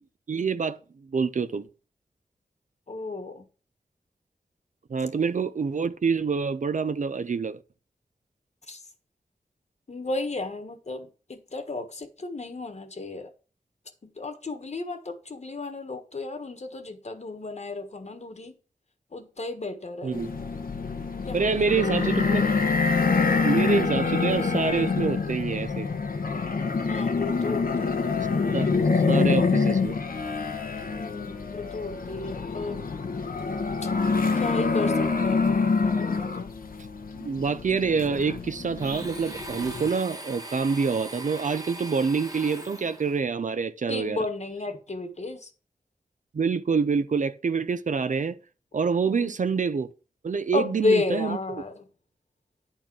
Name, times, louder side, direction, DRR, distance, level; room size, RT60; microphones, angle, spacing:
voice 1, 0.3-0.8 1.1-1.7 4.9-7.6 20.0-20.3 21.3-22.5 23.4-25.9 28.5-28.7 29.1-30.0 37.2-44.2 46.3-48.4 48.7-49.9 50.2-51.6, right 5 dB, 60° right, 0.6 m, -26 dB
voice 2, 2.9-3.5 8.7-8.9 9.9-13.3 14.0-18.6 19.1-20.6 21.2-22.8 26.8-28.1 30.8-32.9 34.3-36.5 43.9-45.5 49.0-49.3 50.5-51.9, left 3 dB, 50° left, 1.4 m, -33 dB
sound 1, 20.1-39.9, left 4 dB, 85° left, 1.2 m, -26 dB
Domestic sounds home sounds, 38.8-43.2, right 1 dB, 25° right, 1.4 m, -40 dB
10.0 x 4.4 x 6.0 m
wide cardioid pair, 85°, 14 cm